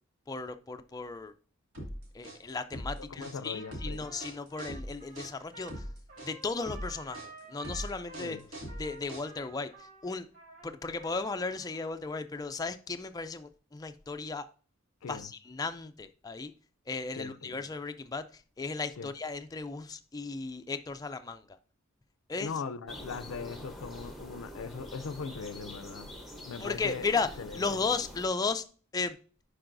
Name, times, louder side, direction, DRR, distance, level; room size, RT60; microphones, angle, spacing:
voice 1, 0.3-1.3 2.1-5.7 6.2-8.4 8.8-9.7 10.0-10.3 10.6-14.5 15.1-16.5 16.9-18.2 18.6-21.6 22.3-22.5 26.6-27.3 27.5-28.6 28.9-29.2, left 4 dB, 20° left, 0.4 m, -35 dB
sound 1, 1.7-9.6, equal, 70° right, 2.2 m, -41 dB
voice 2, 3.2-4.1 8.2-8.4 15.0-15.3 17.1-17.6 19.0-19.1 22.4-26.1 26.4-27.8, left 5 dB, 75° left, 0.5 m, -40 dB
Trumpet, 3.5-11.8, right 4 dB, 45° right, 3.6 m, -52 dB
sound 2, 22.9-28.3, equal, ahead, 0.9 m, -45 dB
10.5 x 4.8 x 2.6 m
head